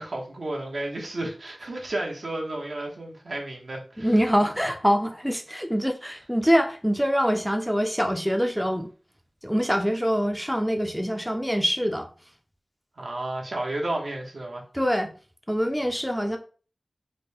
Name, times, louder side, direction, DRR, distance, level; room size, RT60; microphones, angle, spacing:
voice 1, 0.0-4.1 13.0-14.6, right 1 dB, 75° right, 1.0 m, -32 dB
voice 2, 4.0-8.9 9.4-12.1 14.7-15.1 15.5-16.4, equal, ahead, 0.5 m, -24 dB
4.1 x 2.1 x 3.3 m
wide cardioid pair, 60°, 0 cm